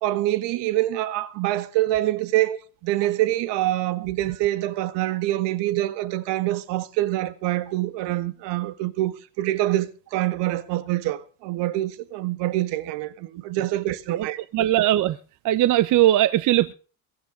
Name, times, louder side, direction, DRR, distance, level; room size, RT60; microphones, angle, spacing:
voice 1, 0.0-14.4, right 15 dB, 60° right, 2.0 m, -25 dB
voice 2, 14.5-15.2 15.4-16.7, right 14 dB, 40° right, 0.9 m, -19 dB
23.0 x 10.0 x 5.0 m
supercardioid pair, 135°, 47 cm